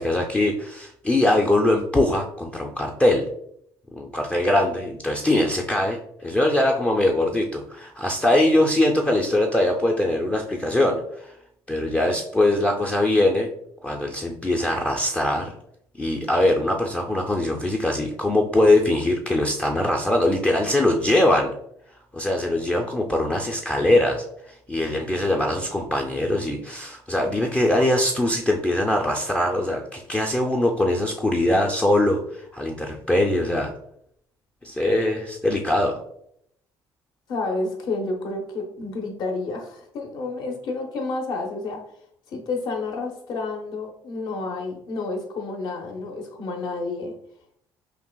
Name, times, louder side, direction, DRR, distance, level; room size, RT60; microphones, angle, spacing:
voice 1, 0.0-3.3 3.9-11.3 11.7-13.5 13.8-15.5 16.0-21.5 22.1-24.2 24.7-33.7 34.6-36.0, left 1 dB, 15° left, 0 dB, 0.4 m, -22 dB
voice 2, 37.3-41.8 42.3-47.1, left 3 dB, 60° left, 3 dB, 0.9 m, -30 dB
5.7 x 2.3 x 2.2 m, 0.70 s
cardioid pair, 110°, 8 cm